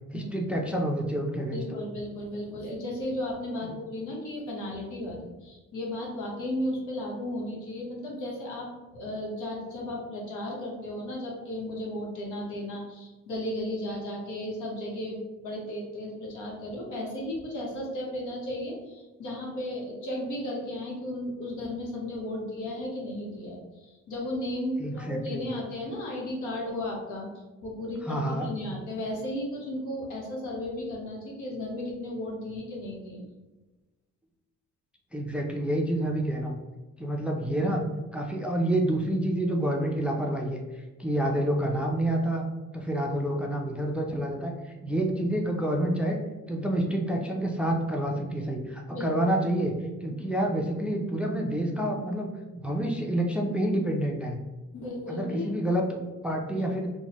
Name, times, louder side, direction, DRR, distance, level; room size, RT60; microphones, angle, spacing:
voice 1, 0.1-1.8 24.8-25.5 28.1-28.5 35.1-36.6 37.0-37.8 38.1-40.6 41.0-42.4 42.7-46.2 46.5-49.8 50.0-54.4 55.1-56.9, right 1 dB, 5° right, 0 dB, 0.4 m, -28 dB
voice 2, 1.5-27.3 27.6-33.2 48.9-49.1 54.7-55.5 56.5-56.6, left 1 dB, 80° left, -2 dB, 1.0 m, -35 dB
3.1 x 2.2 x 2.9 m, 1.1 s
cardioid pair, 90°, 30 cm